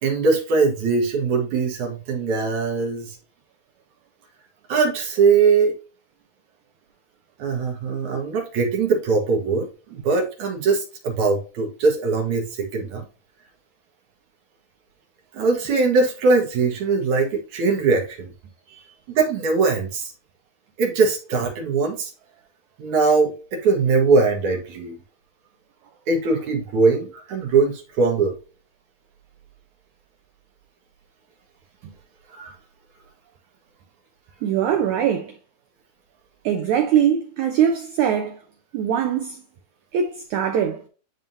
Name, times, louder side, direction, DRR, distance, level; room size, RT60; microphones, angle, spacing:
voice 1, 0.0-3.2 4.7-5.7 7.4-13.0 15.3-18.3 19.1-20.1 20.8-22.1 22.8-25.0 26.1-28.3 32.3-32.6, right 4 dB, 60° right, 2.4 m, -21 dB
voice 2, 34.4-35.3 36.4-38.4 38.7-39.4 39.9-40.8, right 9 dB, 80° right, 1.7 m, -22 dB
11.0 x 3.6 x 2.7 m
omnidirectional pair, 4.2 m